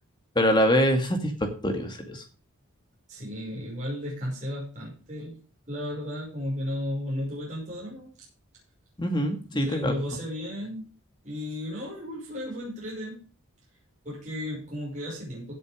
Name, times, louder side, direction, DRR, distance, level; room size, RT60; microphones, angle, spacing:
voice 1, 0.4-2.2 9.0-9.9, equal, 20° left, 5 dB, 2.2 m, -24 dB
voice 2, 3.1-5.4 5.7-8.1 9.5-10.8 11.2-13.2 14.0-15.5, left 1 dB, 35° right, -4 dB, 5.6 m, -34 dB
16.5 x 7.1 x 5.1 m, 0.39 s
head